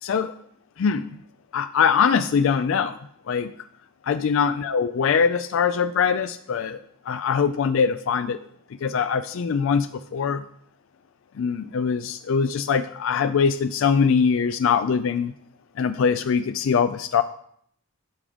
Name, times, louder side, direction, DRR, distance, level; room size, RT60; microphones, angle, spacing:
voice 1, 0.0-0.3 0.8-1.2 1.5-3.0 3.3-3.5 4.0-6.8 7.1-8.4 8.8-10.4 11.4-15.3 15.8-17.2, left 6 dB, 65° left, 11 dB, 0.3 m, -22 dB
12.0 x 5.0 x 3.7 m, 0.66 s
head